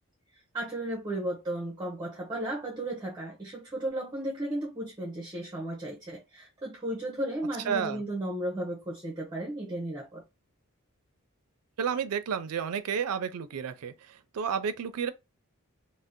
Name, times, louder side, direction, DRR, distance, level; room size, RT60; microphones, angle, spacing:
voice 1, 0.3-10.2, right 1 dB, 20° right, 0.6 m, -34 dB
voice 2, 7.7-8.0 11.8-15.1, right 7 dB, 85° right, 0.4 m, -31 dB
2.6 x 2.1 x 3.5 m
head